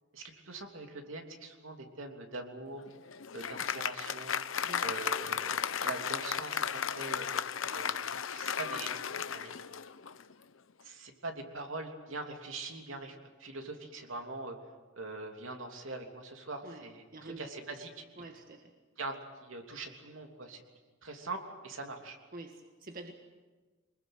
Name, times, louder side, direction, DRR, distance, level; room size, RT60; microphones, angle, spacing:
voice 1, 0.1-2.8 3.3-4.4 4.8-7.3 7.7-8.0 8.3-8.9 9.2-9.5 10.8-14.6 14.9-18.0 19.0-20.6 21.0-22.2, right 3 dB, 80° right, 3 dB, 3.1 m, -42 dB
Applause, 2.8-10.3, left 7 dB, 85° left, 0.9 m, -35 dB
voice 2, 4.6-5.0 16.6-17.5 18.2-18.7 22.3-23.1, right 2 dB, 45° right, 4 dB, 1.6 m, -47 dB
25.0 x 21.0 x 8.0 m, 1.3 s
head